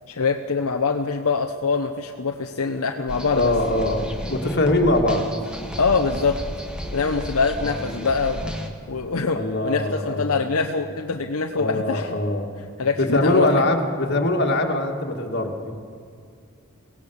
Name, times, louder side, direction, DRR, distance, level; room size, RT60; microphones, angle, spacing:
voice 1, 0.1-3.5 5.8-6.4 6.9-8.5 8.9-9.4 9.6-12.1 12.8-13.5, left 4 dB, 75° left, 4 dB, 0.8 m, -24 dB
sound 1, 3.1-8.7, equal, 5° right, 1.5 m, -33 dB
voice 2, 3.3-5.3 7.6-7.7 9.4-10.4 11.6-12.5 13.0-15.7, left 1 dB, 50° left, 2 dB, 2.2 m, -22 dB
23.5 x 18.0 x 7.2 m, 2.2 s
head